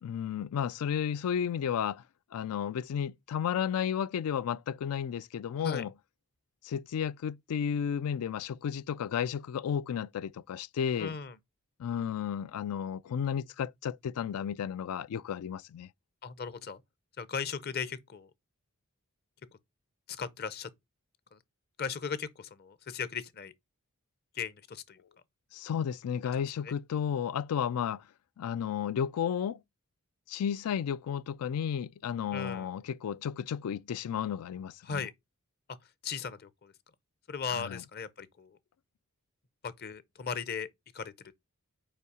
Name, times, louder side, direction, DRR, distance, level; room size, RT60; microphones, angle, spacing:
voice 1, 0.0-2.0 2.3-5.9 6.6-11.1 11.8-15.9 25.5-28.0 28.4-29.6 30.3-35.0 37.5-37.8, left 8 dB, 85° left, 0.3 m, -33 dB
voice 2, 11.0-11.4 16.2-16.8 17.2-18.3 20.1-20.7 21.3-21.4 21.8-23.5 24.3-25.0 26.3-26.7 32.3-32.7 34.8-35.1 35.7-36.7 37.3-38.6 39.6-40.7 40.9-41.3, left 6 dB, 45° left, 0.6 m, -37 dB
5.6 x 4.7 x 4.9 m
head